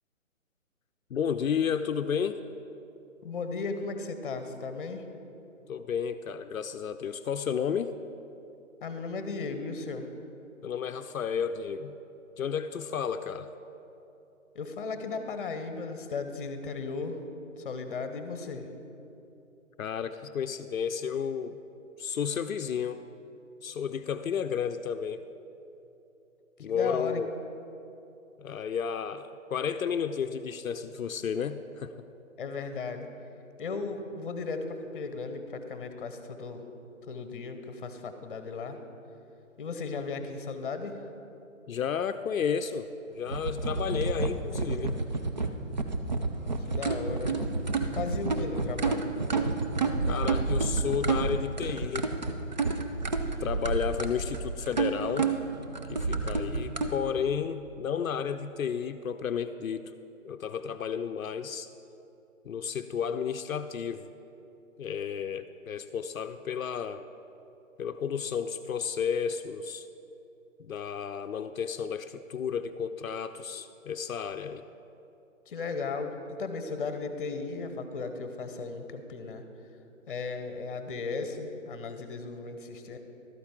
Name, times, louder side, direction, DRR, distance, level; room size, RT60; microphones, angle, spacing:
voice 1, 1.1-2.4 5.7-8.0 10.6-12.0 12.4-13.5 19.8-21.6 22.0-23.0 23.6-25.2 26.6-27.3 28.4-32.1 41.7-45.0 50.1-52.1 53.4-55.3 55.9-59.9 60.2-61.7 62.4-64.1 64.8-67.1 67.8-69.9 70.6-74.7, left 7 dB, 80° left, 9 dB, 0.5 m, -32 dB
voice 2, 3.2-5.1 8.8-10.1 14.5-17.2 17.6-18.7 26.6-27.2 32.4-33.1 33.6-36.6 37.1-38.8 39.6-41.1 46.6-47.4 47.9-49.1 75.5-79.4 80.1-83.0, left 4 dB, 40° left, 8 dB, 0.8 m, -36 dB
sound 1, 43.3-56.9, right 3 dB, 35° right, 0.4 m, -30 dB
12.5 x 8.6 x 3.6 m, 2.9 s
figure-of-eight pair, 145°, 40 cm